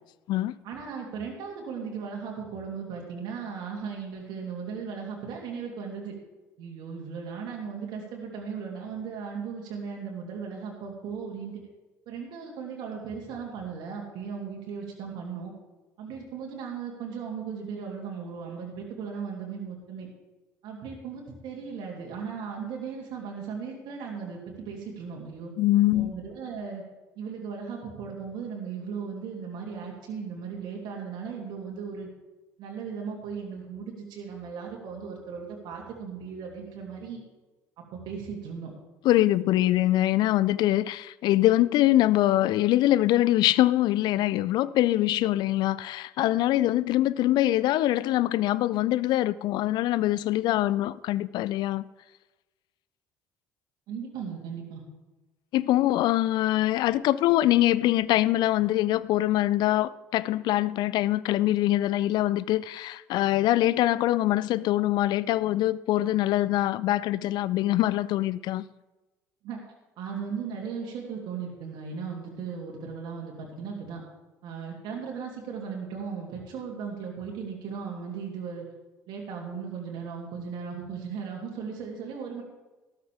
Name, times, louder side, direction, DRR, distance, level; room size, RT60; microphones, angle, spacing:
voice 1, 0.6-6.1 6.6-11.6 12.1-15.5 16.0-20.1 20.6-25.5 25.9-26.8 27.2-32.1 32.6-37.2 37.8-38.7 53.9-54.8 69.4-69.6 70.0-74.0 74.4-78.7 79.1-82.4, right 6 dB, 60° right, 2.8 m, -37 dB
voice 2, 25.6-26.1 39.0-51.8 55.5-68.6, left 15 dB, 60° left, 0.5 m, -23 dB
13.5 x 13.0 x 3.5 m
hypercardioid pair, 55°, 9 cm